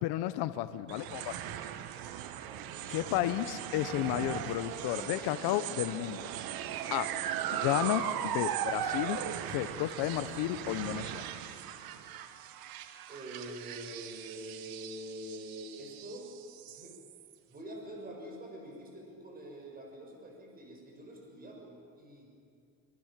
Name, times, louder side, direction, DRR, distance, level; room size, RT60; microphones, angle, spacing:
voice 1, 0.0-1.3 2.9-6.3 6.9-7.1 7.5-9.2 9.5-11.2, left 14 dB, 70° left, 12 dB, 1.0 m, -32 dB
sound 1, 0.9-17.3, right 10 dB, 60° right, 1.5 m, -38 dB
voice 2, 2.4-3.0 13.1-16.3 16.7-17.0 17.5-22.3, right 1 dB, 20° right, 1 dB, 6.8 m, -46 dB
26.0 x 25.5 x 7.5 m, 2.4 s
cardioid pair, 120°, 40 cm